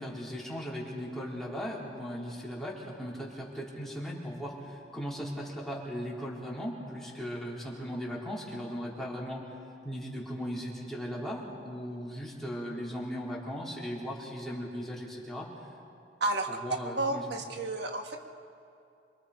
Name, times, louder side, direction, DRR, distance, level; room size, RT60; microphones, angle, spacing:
voice 1, 0.0-9.6 9.8-15.7 16.5-17.3, equal, ahead, -6 dB, 4.1 m, -38 dB
voice 2, 16.2-16.5 17.0-18.2, right 2 dB, 65° right, 4 dB, 1.5 m, -31 dB
27.0 x 24.0 x 5.0 m, 2.5 s
head